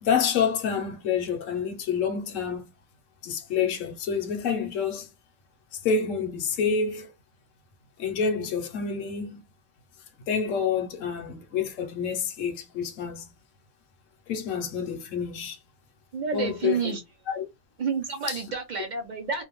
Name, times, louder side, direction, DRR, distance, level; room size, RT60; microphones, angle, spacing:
voice 1, 0.0-2.6 3.2-5.1 5.7-7.1 8.0-9.4 10.3-13.3 14.3-15.6 16.3-16.9 17.3-17.4 18.3-18.4, left 6 dB, 70° left, 1.0 m, -28 dB
voice 2, 16.1-17.0 17.8-19.4, right 5 dB, 55° right, 0.5 m, -29 dB
2.6 x 2.2 x 2.9 m
omnidirectional pair, 1.4 m